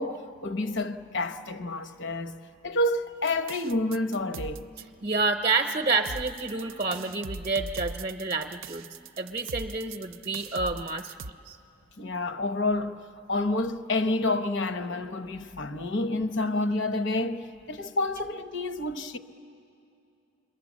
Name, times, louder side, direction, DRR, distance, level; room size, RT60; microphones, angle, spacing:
voice 1, 0.0-2.4 2.6-4.7 12.0-13.0 13.3-19.2, left 2 dB, 60° left, 0.9 m, -29 dB
sound 1, 3.3-4.8 6.0-11.3, right 3 dB, 85° right, 0.5 m, -40 dB
voice 2, 5.0-8.8 9.2-11.1 11.5-11.6, right 3 dB, 35° right, 0.7 m, -28 dB
30.0 x 22.0 x 7.3 m
head